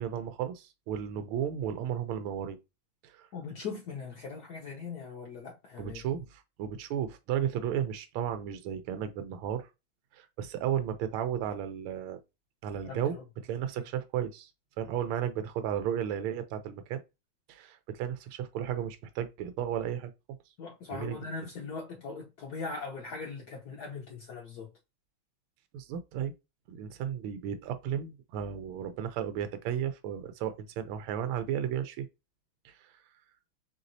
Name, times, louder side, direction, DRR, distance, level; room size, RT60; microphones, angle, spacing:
voice 1, 0.0-2.6 3.0-3.3 5.8-9.7 10.1-12.2 12.6-14.5 14.8-17.0 17.5-20.4 20.9-21.2 25.7-26.3 26.7-32.1 32.6-33.0, right 9 dB, 90° right, 1.5 m, -34 dB
voice 2, 3.3-6.1 12.8-13.2 20.6-24.7, left 4 dB, 60° left, 1.1 m, -40 dB
4.7 x 4.0 x 2.6 m
omnidirectional pair, 2.3 m